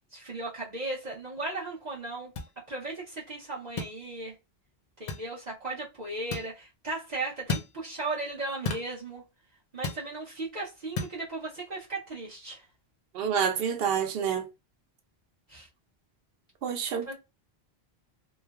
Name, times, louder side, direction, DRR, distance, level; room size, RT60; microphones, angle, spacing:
voice 1, 0.1-4.3 5.0-9.3 9.7-12.7 15.5-15.7 17.1-17.2, right 2 dB, 45° right, 0.9 m, -36 dB
sound 1, 2.4-2.5 3.8-4.0 5.1-5.3 6.3-6.5 7.5-7.7 8.6-8.9 9.8-10.1 11.0-11.2, left 4 dB, 55° left, 0.6 m, -32 dB
voice 2, 13.1-14.4 16.6-17.1, right 7 dB, 70° right, 0.8 m, -28 dB
3.1 x 2.1 x 2.3 m
omnidirectional pair, 1.1 m